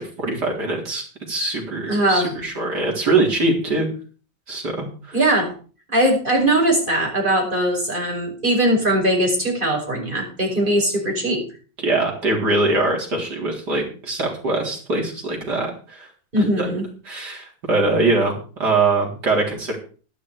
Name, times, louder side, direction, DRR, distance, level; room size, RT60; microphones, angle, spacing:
voice 1, 0.0-3.9 4.5-5.2 11.8-16.1 16.4-16.8 17.1-19.8, right 2 dB, 55° right, 0 dB, 4.6 m, -23 dB
voice 2, 1.9-2.3 5.1-5.5 5.9-11.4 16.3-16.8, right 1 dB, 25° right, -1 dB, 5.5 m, -20 dB
12.0 x 12.0 x 4.8 m, 0.38 s
omnidirectional pair, 2.1 m